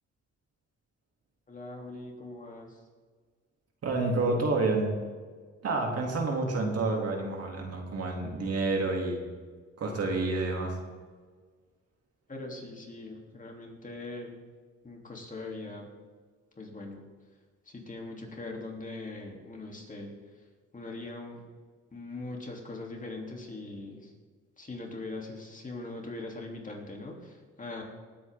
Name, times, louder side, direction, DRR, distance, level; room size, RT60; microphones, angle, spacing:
voice 1, 1.5-2.9 12.3-14.3 14.8-15.9 16.5-17.4 17.6-21.4 21.9-24.1 24.6-27.8, left 2 dB, 25° left, 0 dB, 3.1 m, -41 dB
voice 2, 3.8-4.9 5.6-9.2 9.8-10.8, right 3 dB, 55° right, 1 dB, 2.7 m, -29 dB
19.0 x 8.8 x 3.7 m, 1.5 s
cardioid pair, 90°, 30 cm